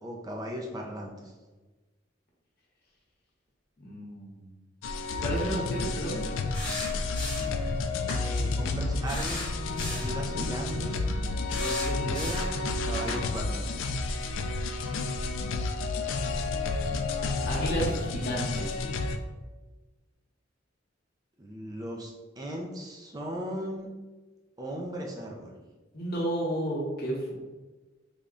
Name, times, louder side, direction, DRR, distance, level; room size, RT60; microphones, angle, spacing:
voice 1, 0.0-1.3 8.2-9.5 9.9-11.0 11.5-12.4 12.7-14.0 21.4-23.9 24.6-25.5, equal, 20° right, -1 dB, 0.4 m, -37 dB
voice 2, 3.8-4.5 5.2-6.2 17.4-18.8 25.9-27.3, right 1 dB, 55° left, -3 dB, 1.0 m, -31 dB
sound 1, 4.8-19.2, left 3 dB, 85° left, 0.3 m, -30 dB
sound 2, 6.5-7.6 8.1-8.2 9.0-10.2 11.5-12.6 13.1-13.2, left 2 dB, 25° left, 0.9 m, -36 dB
3.5 x 2.2 x 3.7 m, 1.2 s
head